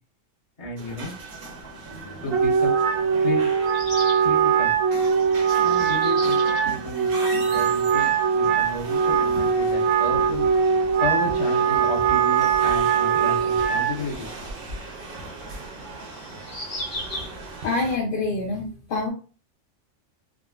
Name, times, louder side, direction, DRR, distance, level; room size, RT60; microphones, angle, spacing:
voice 1, 0.6-1.1 2.2-2.8 3.2-3.5 4.2-4.7 5.6-10.5 11.0-14.6, left 3 dB, 30° left, -6 dB, 1.1 m, -33 dB
sound 1, 0.8-18.0, right 2 dB, 55° right, 0.7 m, -38 dB
sound 2, 2.1-2.2 3.6-4.3 5.0-6.7 7.9-8.2 10.7-10.8 13.9-14.0 16.4-17.4, left 1 dB, 85° left, 1.3 m, -36 dB
Wind instrument woodwind instrument, 2.3-14.0, right 7 dB, 80° right, 0.9 m, -21 dB
voice 2, 17.6-19.1, left 3 dB, 55° left, -1 dB, 0.7 m, -26 dB
3.6 x 2.0 x 2.3 m, 0.36 s
omnidirectional pair, 1.3 m